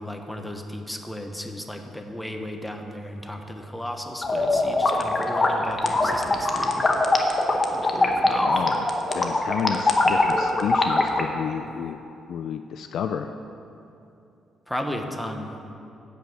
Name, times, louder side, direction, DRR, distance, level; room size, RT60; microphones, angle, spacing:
voice 1, 0.0-6.9 7.9-8.5 14.7-15.5, left 1 dB, 5° left, 4 dB, 0.9 m, -34 dB
sound 1, 4.2-11.2, left 2 dB, 25° left, 1.0 m, -22 dB
voice 2, 8.4-8.8 9.1-12.0 12.3-13.3, left 8 dB, 70° left, 8 dB, 0.3 m, -30 dB
10.0 x 5.4 x 7.9 m, 2.7 s
cardioid pair, 90°, 0 cm